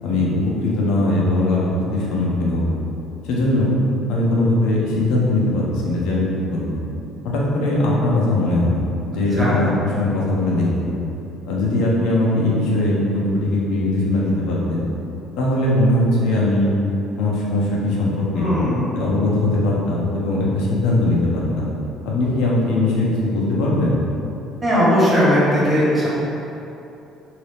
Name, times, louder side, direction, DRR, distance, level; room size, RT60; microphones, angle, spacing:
voice 1, 0.0-2.8 3.3-3.7 4.1-6.8 7.2-8.8 9.1-11.0 11.5-14.8 15.4-16.7 17.2-18.5 18.9-21.7 22.0-23.9, left 1 dB, 85° left, -4 dB, 0.7 m, -20 dB
voice 2, 18.4-18.8 24.6-26.1, equal, 25° right, -9 dB, 1.0 m, -17 dB
2.8 x 2.8 x 3.3 m, 2.9 s
cardioid pair, 145°, 0 cm